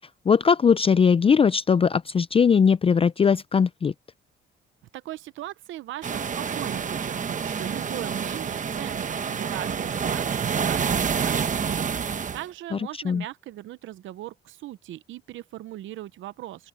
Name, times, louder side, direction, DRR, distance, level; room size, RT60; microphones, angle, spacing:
voice 1, 0.3-3.9 12.7-12.8 13.0-13.2, left 6 dB, 30° left, 0.4 m, -20 dB
voice 2, 4.9-16.7, right 14 dB, 75° right, 0.7 m, -39 dB
sound 1, 6.0-12.4, right 6 dB, 40° right, 1.1 m, -28 dB
open air
cardioid pair, 90°, 20 cm